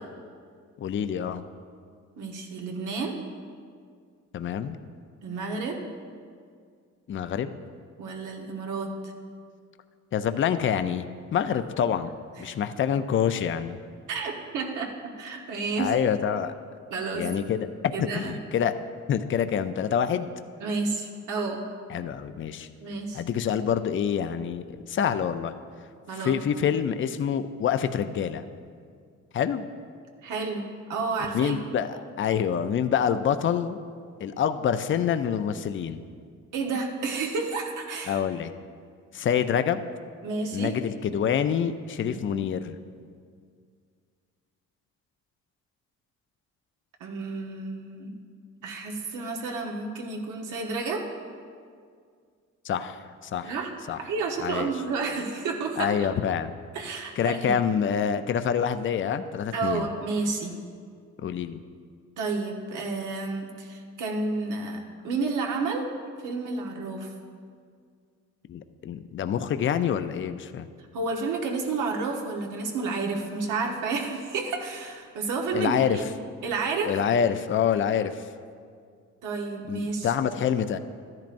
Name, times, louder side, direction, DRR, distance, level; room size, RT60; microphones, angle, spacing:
voice 1, 0.8-1.4 4.3-4.8 7.1-7.5 10.1-11.1 11.3-12.1 12.4-13.8 15.8-16.5 17.1-18.8 19.1-20.3 21.9-22.7 23.1-25.5 26.1-28.4 29.3-29.7 31.3-33.8 34.2-36.0 38.1-38.5 39.1-39.8 40.5-42.8 52.6-53.5 53.9-54.0 54.4-54.7 55.8-56.5 57.2-59.9 61.2-61.6 68.5-70.7 75.5-76.0 76.9-78.2 79.7-80.8, left 8 dB, 40° left, 10 dB, 0.5 m, -26 dB
voice 2, 2.2-3.2 5.2-5.8 8.0-9.1 12.4-12.5 14.1-15.9 16.9-17.3 17.9-18.3 20.6-21.6 22.8-23.2 26.1-26.3 30.2-31.6 36.5-38.2 40.2-40.8 42.1-42.4 47.0-48.1 48.6-51.1 53.4-56.1 56.7-57.6 59.5-60.6 62.2-65.9 66.2-67.1 70.9-76.0 76.4-76.9 79.2-80.1, right 4 dB, 85° right, 1 dB, 1.3 m, -31 dB
13.0 x 10.5 x 2.6 m, 2.1 s
cardioid pair, 90°, 30 cm